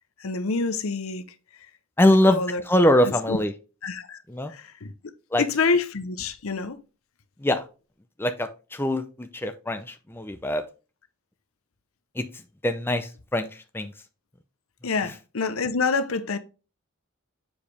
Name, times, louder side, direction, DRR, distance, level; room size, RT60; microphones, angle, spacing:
voice 1, 0.2-1.3 2.0-2.6 3.0-3.4 3.8-4.2 4.5-4.9 5.4-6.8 14.8-16.4, left 4 dB, 70° left, 0.8 m, -27 dB
voice 2, 2.0-3.5 4.3-4.5 5.3-5.4 7.4-7.6 8.2-10.6 12.2-13.9, left 1 dB, 10° left, 0.6 m, -23 dB
7.2 x 4.9 x 3.3 m
head